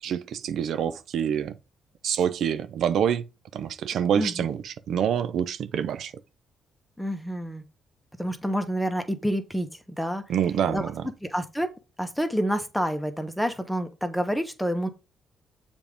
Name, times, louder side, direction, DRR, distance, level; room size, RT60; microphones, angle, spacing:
voice 1, 0.0-1.5 2.0-3.2 3.5-6.1 10.3-11.0, right 8 dB, 70° right, 0.5 m, -26 dB
voice 2, 7.0-7.6 8.2-10.2 10.7-10.8 11.2-11.7 12.0-14.9, equal, ahead, 1.2 m, -28 dB
7.1 x 3.6 x 5.1 m
cardioid pair, 90°, 0 cm